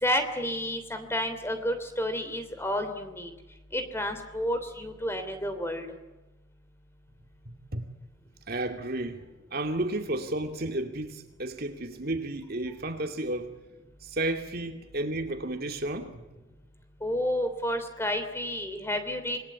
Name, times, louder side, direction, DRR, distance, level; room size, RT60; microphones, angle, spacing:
voice 1, 0.0-3.3 3.7-5.9 17.0-19.4, equal, 10° left, 3.1 m, -30 dB
voice 2, 7.5-7.9 8.5-13.5 14.0-16.2, right 1 dB, 50° right, 2.6 m, -32 dB
28.0 x 21.5 x 8.4 m
head